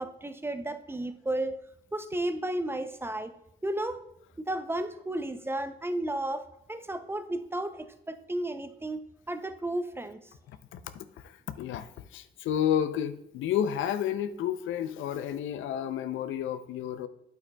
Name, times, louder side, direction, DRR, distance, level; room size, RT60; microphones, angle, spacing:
voice 1, 0.0-1.6 1.9-3.3 3.6-4.0 4.5-10.2, right 1 dB, 10° right, 10 dB, 0.5 m, -33 dB
voice 2, 10.5-17.1, left 9 dB, 80° left, 12 dB, 0.5 m, -31 dB
8.9 x 8.2 x 2.2 m, 0.81 s
cardioid pair, 90°, 20 cm